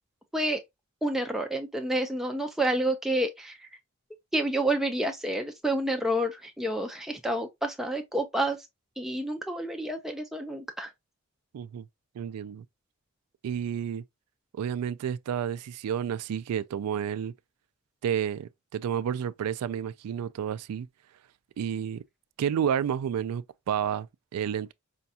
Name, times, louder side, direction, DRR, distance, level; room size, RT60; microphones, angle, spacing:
voice 1, 1.0-3.7 4.3-8.6 9.0-10.9, right 1 dB, ahead, 0.4 m, -29 dB
voice 2, 11.5-11.9 12.1-12.6 13.4-14.0 14.6-17.3 18.0-20.9 21.6-22.0 22.4-24.7, right 8 dB, 90° right, 0.3 m, -30 dB
5.0 x 2.3 x 2.7 m
head